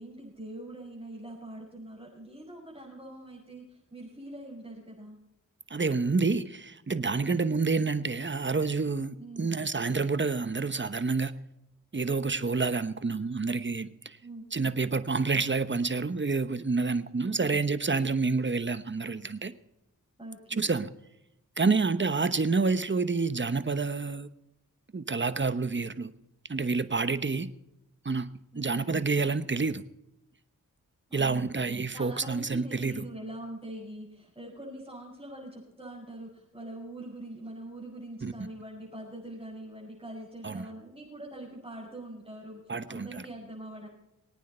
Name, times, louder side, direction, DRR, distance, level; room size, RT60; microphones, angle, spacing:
voice 1, 0.0-5.2 9.2-9.5 14.2-14.5 17.2-17.5 20.2-20.7 28.5-28.9 31.1-31.6 31.9-43.9, right 1 dB, 15° right, -6 dB, 6.0 m, -43 dB
voice 2, 5.7-11.3 11.9-14.2 14.5-19.5 20.5-20.9 21.6-24.3 24.9-26.1 26.5-27.5 28.0-28.3 28.6-29.8 31.1-33.0 38.2-38.3 40.4-40.6 42.7-43.3, right 4 dB, 35° right, 13 dB, 1.0 m, -28 dB
22.0 x 9.2 x 4.4 m, 0.87 s
cardioid pair, 50°, 34 cm